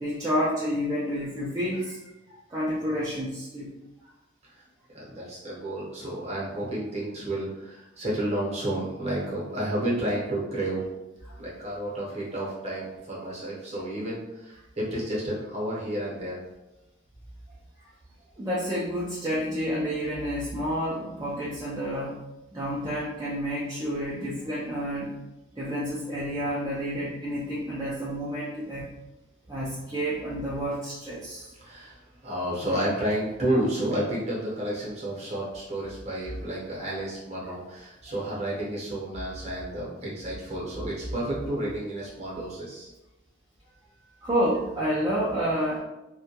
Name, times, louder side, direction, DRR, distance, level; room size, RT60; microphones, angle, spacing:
voice 1, 0.0-3.7 11.3-11.4 17.8-17.9 18.4-22.2 22.5-25.1 25.6-28.9 29.5-31.5 44.2-45.8, equal, 20° right, -8 dB, 0.3 m, -29 dB
voice 2, 4.9-10.8 11.4-16.4 31.6-42.9, right 1 dB, 35° right, -5 dB, 0.7 m, -31 dB
2.3 x 2.1 x 2.8 m, 0.97 s
head